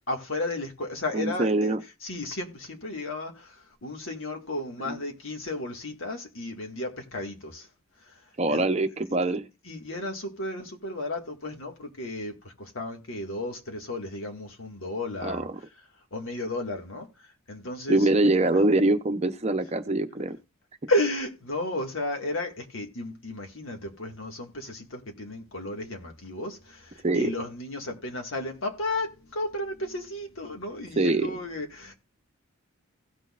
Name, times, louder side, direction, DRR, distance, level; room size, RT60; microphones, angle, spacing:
voice 1, 0.1-1.7 2.0-7.7 8.0-8.7 9.6-15.7 16.1-18.4 20.9-31.9, left 2 dB, 75° left, 1.9 m, -33 dB
voice 2, 1.1-1.8 4.9-5.0 8.4-9.4 15.2-15.4 17.9-20.4 27.0-27.3 31.0-31.3, right 2 dB, 30° right, 0.7 m, -23 dB
17.0 x 6.3 x 2.4 m
head